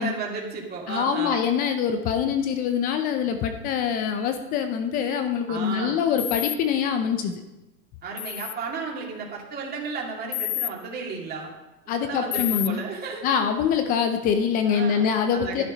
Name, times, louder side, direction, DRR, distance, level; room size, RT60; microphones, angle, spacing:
voice 1, 0.0-1.5 5.5-6.0 8.0-11.5 11.8-13.3 14.7-15.6, right 4 dB, 20° right, -2 dB, 2.5 m, -34 dB
voice 2, 0.9-7.4 11.9-12.8 13.2-15.6, left 7 dB, 20° left, 7 dB, 0.5 m, -24 dB
sound 1, 6.2-6.6 8.2-8.5 10.3-10.7 12.3-12.7, left 13 dB, 75° left, 0.8 m, -28 dB
11.0 x 11.0 x 5.2 m, 1.0 s
hypercardioid pair, 135°, 49 cm